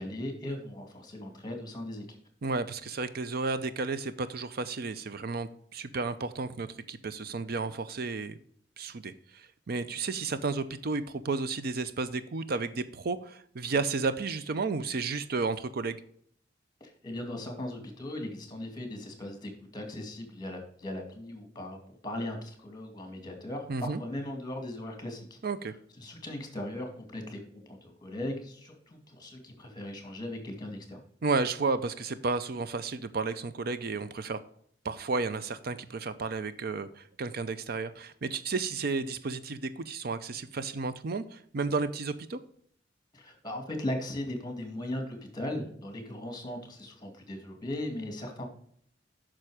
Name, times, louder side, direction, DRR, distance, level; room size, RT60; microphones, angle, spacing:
voice 1, 0.0-2.2 16.8-25.4 26.0-31.0 43.1-48.5, left 1 dB, 20° left, 4 dB, 2.2 m, -38 dB
voice 2, 2.4-8.4 8.8-16.0 23.7-24.0 25.4-25.7 31.2-34.4 34.8-42.4, right 4 dB, 55° right, 12 dB, 0.5 m, -32 dB
9.0 x 6.2 x 4.9 m, 0.63 s
head